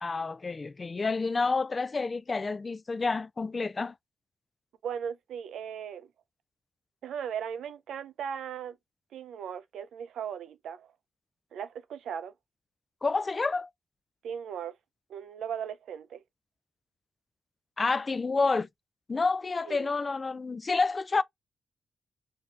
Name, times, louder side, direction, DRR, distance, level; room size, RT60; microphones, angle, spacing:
voice 1, 0.0-3.9 13.0-13.7 17.8-18.7 19.1-21.2, left 4 dB, 35° left, 0.3 m, -29 dB
voice 2, 4.8-6.1 7.0-8.8 9.1-10.9 11.5-12.3 14.2-14.7 15.1-16.2 19.7-19.9, right 8 dB, 90° right, 0.5 m, -37 dB
5.8 x 2.7 x 2.5 m
cardioid pair, 70°, 0 cm